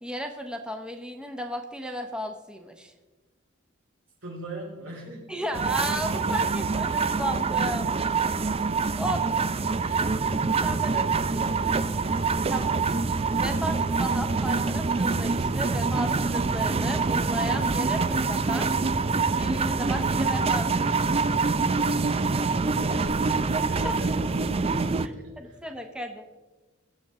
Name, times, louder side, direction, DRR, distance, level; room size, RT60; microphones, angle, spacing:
voice 1, 0.0-2.9 5.3-7.9 9.0-9.2 10.6-11.0 12.5-12.8 13.4-18.7 19.3-21.2 23.8-23.9 25.0-26.2, equal, 5° right, 5 dB, 1.0 m, -34 dB
voice 2, 4.2-5.4 9.8-10.2 10.8-12.2 22.4-23.4 23.7-25.6, right 1 dB, 90° right, -3 dB, 4.6 m, -42 dB
sound 1, 5.5-25.1, right 4 dB, 30° right, 0.5 m, -25 dB
22.0 x 7.7 x 3.7 m, 1.2 s
head